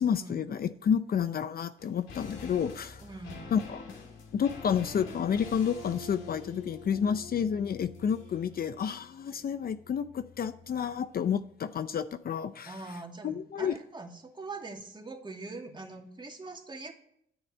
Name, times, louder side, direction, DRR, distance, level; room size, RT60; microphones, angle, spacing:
voice 1, 0.0-3.0 3.5-3.8 4.3-12.8 13.2-13.7, left 7 dB, 50° left, 12 dB, 0.7 m, -30 dB
sound 1, 1.8-11.2 11.4-11.5, left 4 dB, 80° left, 3.0 m, -46 dB
voice 2, 3.0-3.5 12.7-16.9, right 3 dB, 25° right, 3 dB, 2.2 m, -43 dB
9.7 x 8.1 x 8.6 m, 0.71 s
cardioid pair, 90°, 20 cm